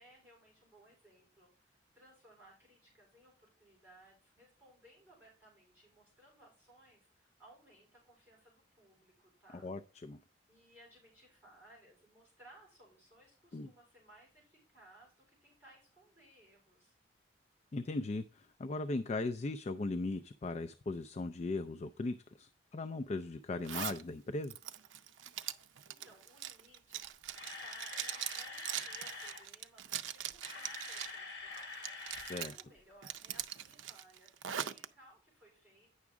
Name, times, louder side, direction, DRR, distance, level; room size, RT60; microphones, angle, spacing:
voice 1, 0.0-9.7 10.5-16.9 25.9-27.0 27.4-35.9, right 1 dB, 10° right, -3 dB, 4.2 m, -62 dB
voice 2, 9.6-10.2 13.5-13.7 17.7-24.5 32.2-32.6, left 2 dB, 35° left, 9 dB, 0.3 m, -38 dB
Zipper (clothing), 23.6-24.0 24.4-31.2 31.5-32.6 33.0-34.9, right 10 dB, 85° right, 0.5 m, -42 dB
Camera, 27.0-29.4 30.2-32.5 32.8-32.9 33.4-33.5, left 4 dB, 70° left, 1.8 m, -46 dB
9.5 x 6.1 x 3.6 m, 0.35 s
head